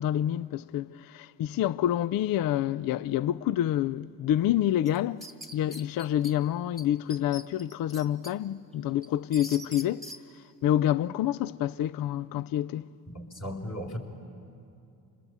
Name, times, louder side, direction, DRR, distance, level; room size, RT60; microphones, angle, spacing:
voice 1, 0.0-5.2 5.5-10.1 10.6-12.9, left 12 dB, 50° left, 0.5 m, -27 dB
sound 1, 4.9-6.3 6.8-6.9 7.1-8.3 8.7-10.2, equal, ahead, 2.0 m, -43 dB
voice 2, 13.1-14.0, equal, 35° left, 4.1 m, -36 dB
27.0 x 20.5 x 8.1 m
hypercardioid pair, 55°, 47 cm